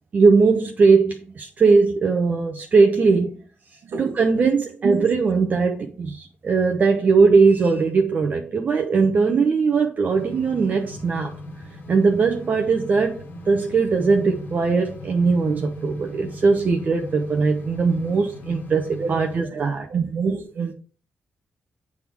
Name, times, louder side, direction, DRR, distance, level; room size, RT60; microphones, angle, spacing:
voice 1, 0.1-3.4 4.0-11.3 11.9-19.9, right 4 dB, 45° right, 0.9 m, -19 dB
sound 1, 10.1-19.4, left 1 dB, 60° left, 1.6 m, -39 dB
voice 2, 19.9-20.7, right 5 dB, 70° right, 1.2 m, -26 dB
7.7 x 3.6 x 4.8 m
cardioid pair, 115°, 4 cm